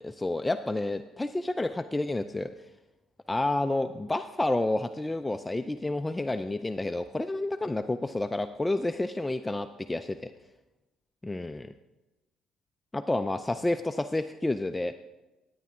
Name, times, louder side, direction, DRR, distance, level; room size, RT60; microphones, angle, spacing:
voice 1, 0.0-2.5 3.3-10.3 11.2-11.7 12.9-14.9, left 2 dB, 15° left, 9 dB, 0.4 m, -30 dB
11.5 x 9.4 x 3.6 m, 1.1 s
supercardioid pair, 75°, 0 cm